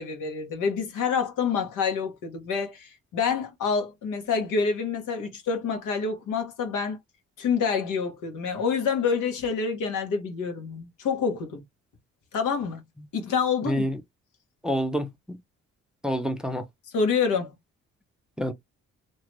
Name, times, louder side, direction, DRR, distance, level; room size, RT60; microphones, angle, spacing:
voice 1, 0.0-7.0 7.4-11.6 12.3-12.8 13.1-13.8 16.9-17.5, left 5 dB, 85° left, 1.3 m, -27 dB
voice 2, 13.7-14.0 14.6-15.4 16.0-16.6 18.4-18.5, equal, ahead, 0.6 m, -27 dB
2.9 x 2.4 x 3.2 m
cardioid pair, 90°, 30 cm